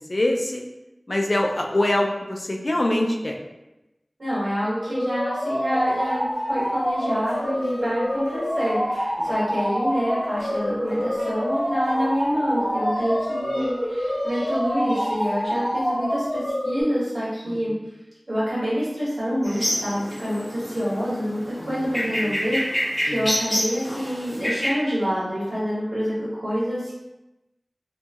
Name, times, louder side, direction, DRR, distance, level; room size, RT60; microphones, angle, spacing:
voice 1, 0.1-0.6 1.1-3.4 9.2-9.3 17.5-17.6 21.6-21.8 22.2-22.4 23.1-23.3, left 1 dB, 55° left, 1 dB, 0.4 m, -24 dB
voice 2, 4.2-17.7 18.3-26.9, equal, 85° right, -9 dB, 1.3 m, -27 dB
sound 1, 4.8-16.8, equal, 5° right, 1.3 m, -26 dB
sound 2, 5.7-16.4, left 1 dB, 80° left, 0.9 m, -39 dB
sound 3, 19.4-24.7, equal, 15° left, 0.9 m, -28 dB
2.9 x 2.6 x 2.3 m, 0.98 s
wide cardioid pair, 55°, 0 cm